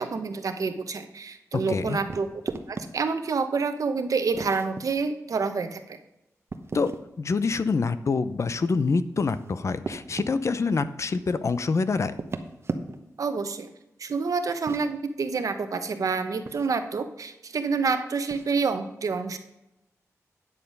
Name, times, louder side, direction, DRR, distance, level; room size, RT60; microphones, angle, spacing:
voice 1, 0.0-2.3 2.7-6.0 13.2-13.7 14.0-19.4, right 4 dB, 70° right, 8 dB, 1.0 m, -28 dB
voice 2, 1.7-2.0 6.7-6.9 7.2-12.1, left 4 dB, 55° left, 13 dB, 0.7 m, -26 dB
sound 1, 2.1-2.9 4.3-4.8 6.5-7.1 9.0-10.3 12.1-13.2 14.5-14.9 16.4-16.7 18.3-18.6, right 3 dB, 45° right, 1.0 m, -36 dB
9.8 x 6.8 x 5.4 m, 0.90 s
wide cardioid pair, 85°, 6 cm